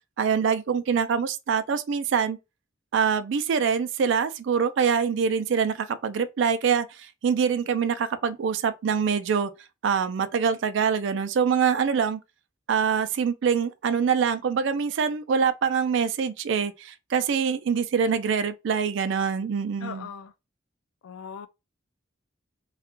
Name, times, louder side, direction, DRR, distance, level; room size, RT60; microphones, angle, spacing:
voice 1, 0.2-2.4 2.9-9.5 9.8-12.2 12.7-20.1, right 6 dB, 60° right, 0.3 m, -24 dB
voice 2, 19.8-20.3 21.0-21.5, left 7 dB, 90° left, 0.3 m, -39 dB
2.3 x 2.1 x 2.9 m
head